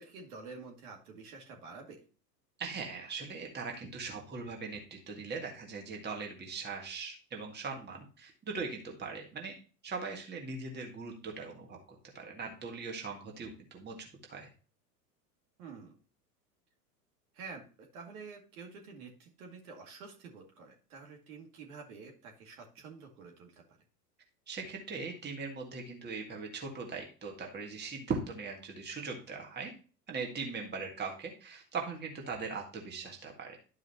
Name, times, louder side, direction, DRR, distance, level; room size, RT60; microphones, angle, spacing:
voice 1, 0.0-2.0 15.6-16.0 17.3-23.8, right 4 dB, 60° right, 2 dB, 2.3 m, -49 dB
voice 2, 2.6-9.5 9.8-11.8 12.1-14.5 24.5-29.7 30.1-33.6, right 4 dB, 20° right, 1 dB, 1.9 m, -40 dB
12.0 x 5.0 x 2.8 m, 0.37 s
figure-of-eight pair, 90°, 50 cm